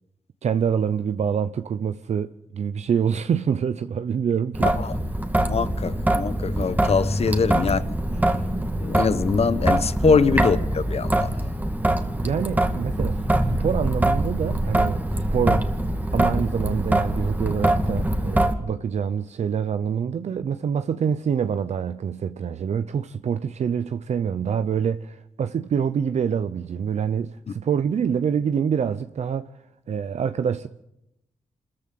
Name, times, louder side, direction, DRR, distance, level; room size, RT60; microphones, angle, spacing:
voice 1, 0.4-4.7 8.3-8.4 10.0-10.2 12.2-13.2 13.5-15.7 16.1-29.5 29.9-30.7, right 7 dB, 70° right, 0.8 m, -26 dB
Traffic noise roadway noise / Drip / Trickle dribble, 4.5-18.5, right 1 dB, 15° right, 2.3 m, -23 dB
voice 2, 4.6-4.9 5.5-7.8 8.8-11.3, left 5 dB, 60° left, 1.2 m, -23 dB
26.5 x 14.5 x 7.8 m
cardioid pair, 65°, 12 cm